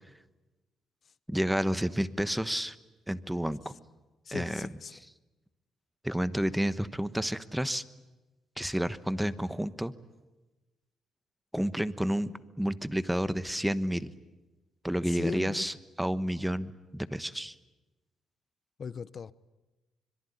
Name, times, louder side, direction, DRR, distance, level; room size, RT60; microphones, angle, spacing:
voice 1, 1.3-2.8 3.1-3.7 4.3-4.7 6.0-7.8 8.6-9.9 11.5-14.1 14.8-17.5, equal, 5° right, 1.2 m, -30 dB
voice 2, 4.3-5.0 15.1-15.6 18.8-19.3, left 6 dB, 45° left, 0.8 m, -38 dB
25.0 x 22.5 x 9.9 m
cardioid pair, 90°, 0 cm